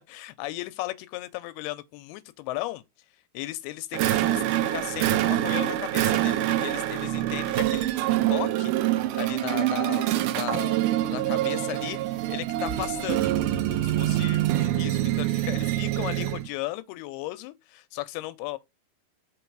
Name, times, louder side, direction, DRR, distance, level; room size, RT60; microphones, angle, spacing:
voice 1, 0.1-2.8 3.3-8.7 9.1-10.1 10.3-10.8 11.1-18.6, left 17 dB, 85° left, 2.5 m, -36 dB
sound 1, 3.9-16.5, right 13 dB, 80° right, 1.9 m, -25 dB
5.8 x 3.8 x 4.6 m
omnidirectional pair, 4.4 m